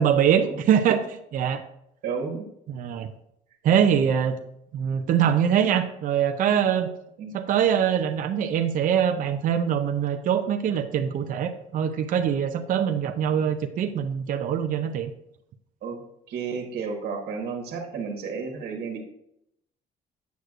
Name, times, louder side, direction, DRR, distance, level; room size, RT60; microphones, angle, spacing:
voice 1, 0.0-1.6 2.7-3.1 3.6-4.4 4.7-6.9 7.3-15.1, right 8 dB, 55° right, 6 dB, 0.6 m, -23 dB
voice 2, 2.0-2.5 7.2-7.3 15.8-16.0 16.3-19.0, right 5 dB, 75° right, 2 dB, 1.4 m, -32 dB
8.1 x 6.3 x 2.5 m, 0.78 s
cardioid pair, 110°, 17 cm